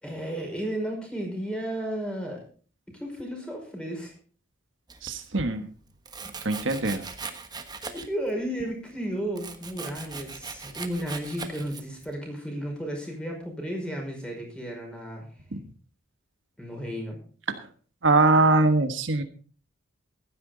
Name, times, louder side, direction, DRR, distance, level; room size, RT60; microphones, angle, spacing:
voice 1, 0.0-2.4 2.9-4.1 6.2-6.4 7.8-15.3 16.6-17.2, equal, 5° left, 1 dB, 5.5 m, -33 dB
Domestic sounds home sounds, 4.9-5.5 6.1-8.3 8.6-12.1, right 4 dB, 20° right, 1.3 m, -40 dB
voice 2, 5.0-5.7 6.4-7.1 15.5-15.6 17.5-17.7 18.0-19.2, right 3 dB, 70° right, 7 dB, 1.4 m, -22 dB
15.5 x 12.5 x 4.0 m, 0.40 s
head